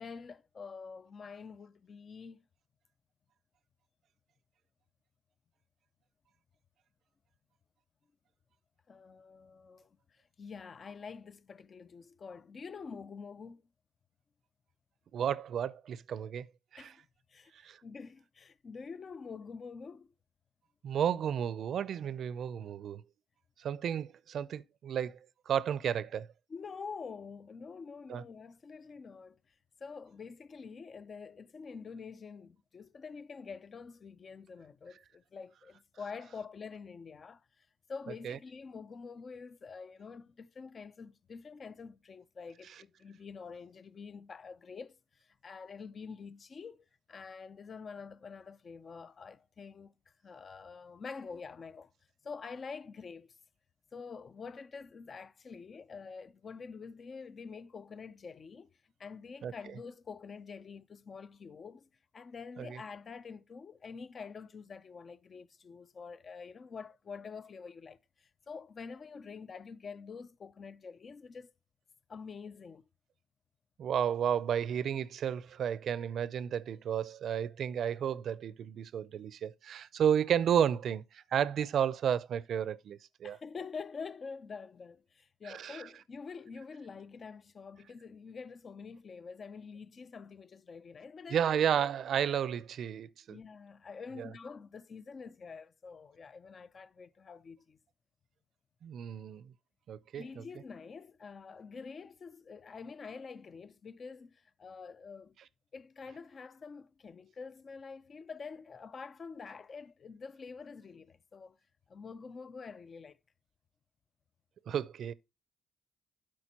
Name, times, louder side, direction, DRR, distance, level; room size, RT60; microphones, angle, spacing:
voice 1, 0.0-2.4 8.9-10.0 10.4-13.6 16.8-17.5 17.8-20.1 26.5-29.4 29.8-49.9 50.2-51.9 52.2-53.4 53.9-58.7 59.0-61.9 62.1-71.5 72.1-72.9 83.2-91.5 93.3-97.8 100.1-105.4 105.7-111.6 111.9-113.2, left 5 dB, 45° left, 0.6 m, -47 dB
voice 2, 15.1-16.5 16.7-16.9 17.6-17.8 20.8-23.0 23.6-25.2 25.5-26.3 28.1-28.2 38.2-38.4 59.4-59.5 62.6-62.8 73.8-83.4 85.4-85.8 91.3-93.4 94.2-94.3 98.8-99.4 99.9-100.4 114.7-115.1, right 9 dB, 65° right, 0.6 m, -32 dB
12.5 x 4.4 x 2.9 m
cardioid pair, 90°, 0 cm